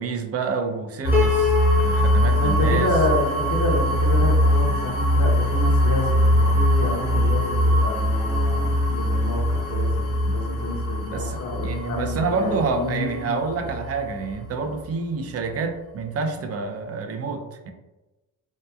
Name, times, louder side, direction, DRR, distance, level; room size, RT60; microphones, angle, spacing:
voice 1, 0.0-3.0 10.3-10.4 11.0-17.7, right 4 dB, 45° right, 5 dB, 0.4 m, -28 dB
sound 1, 1.0-14.8, equal, 70° left, 1.1 m, -22 dB
Piano, 1.1-4.4, left 6 dB, 5° right, 0.7 m, -28 dB
voice 2, 2.3-13.7, left 2 dB, 50° left, -1 dB, 0.7 m, -29 dB
2.8 x 2.2 x 2.2 m, 1.1 s
cardioid pair, 90°, 36 cm